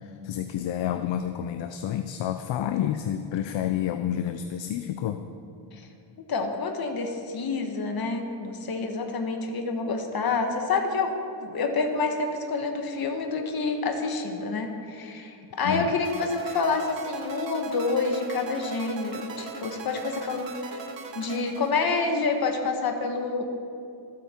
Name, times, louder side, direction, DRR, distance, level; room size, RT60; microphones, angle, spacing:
voice 1, 0.0-5.2 15.6-15.9, left 10 dB, 80° left, 8 dB, 0.7 m, -29 dB
voice 2, 6.3-11.1 11.4-20.8 21.1-23.4, left 4 dB, 55° left, 4 dB, 1.6 m, -28 dB
sound 1, 16.0-22.3, right 5 dB, 75° right, 1.4 m, -40 dB
24.5 x 8.5 x 4.5 m, 2.5 s
cardioid pair, 100°, 44 cm